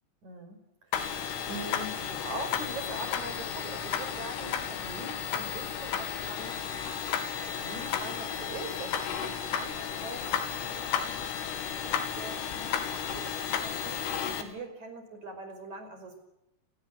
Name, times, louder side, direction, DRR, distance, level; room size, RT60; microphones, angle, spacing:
voice 1, 0.2-6.6 7.6-14.1 14.4-16.2, right 2 dB, 35° right, 8 dB, 6.5 m, -43 dB
sound 1, 0.9-14.4, left 8 dB, 80° left, 5.0 m, -33 dB
29.0 x 21.5 x 8.2 m, 0.88 s
omnidirectional pair, 5.7 m